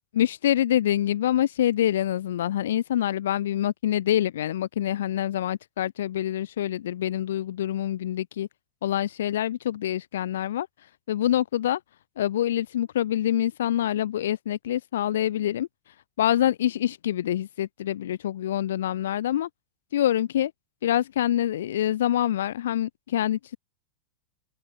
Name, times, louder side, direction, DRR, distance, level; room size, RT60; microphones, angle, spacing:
voice 1, 0.2-8.5 8.8-10.7 11.1-11.8 12.2-15.7 16.2-19.5 19.9-20.5 20.8-23.6, left 11 dB, 60° left, 0.3 m, -26 dB
open air
figure-of-eight pair, 90°, 0 cm